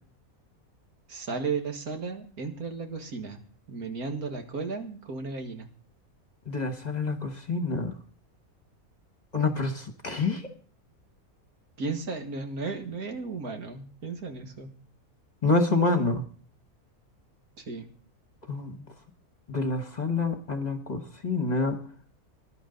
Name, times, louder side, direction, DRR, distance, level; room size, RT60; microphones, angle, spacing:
voice 1, 1.1-3.4 3.7-5.7 11.8-14.7 17.6-17.9, right 4 dB, 80° right, 5 dB, 2.2 m, -34 dB
voice 2, 6.5-7.9 9.3-10.5 15.4-16.2 18.5-18.7 19.5-21.8, left 3 dB, 30° left, 7 dB, 1.2 m, -27 dB
19.5 x 11.0 x 3.9 m, 0.43 s
omnidirectional pair, 1.6 m